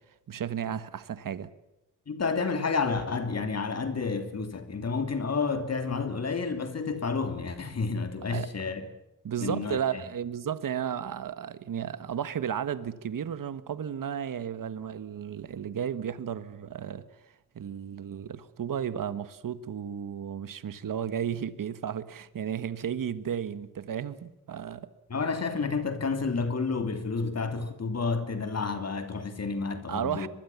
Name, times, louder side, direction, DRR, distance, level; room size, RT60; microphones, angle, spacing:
voice 1, 0.3-1.5 8.3-8.5 9.2-17.0 17.5-24.9 29.9-30.3, right 8 dB, 75° right, 1.5 m, -33 dB
voice 2, 2.1-8.8 9.4-9.8 25.1-30.3, left 4 dB, 50° left, 2.9 m, -30 dB
24.5 x 21.5 x 7.2 m
wide cardioid pair, 125°, 33 cm